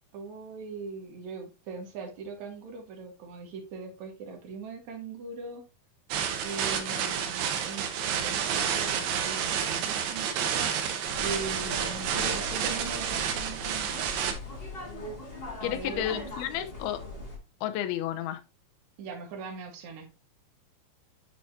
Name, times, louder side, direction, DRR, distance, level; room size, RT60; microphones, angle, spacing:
voice 1, 0.1-5.6 6.4-10.7 11.2-13.9 15.6-16.3 19.0-20.1, right 4 dB, 60° right, 2.5 m, -40 dB
sound 1, 6.1-14.3, right 8 dB, 85° right, 2.9 m, -30 dB
sound 2, 11.0-17.4, left 2 dB, 70° left, 0.5 m, -40 dB
voice 2, 15.6-17.0 17.6-18.4, left 12 dB, 85° left, 2.7 m, -31 dB
9.0 x 4.4 x 2.7 m
omnidirectional pair, 4.3 m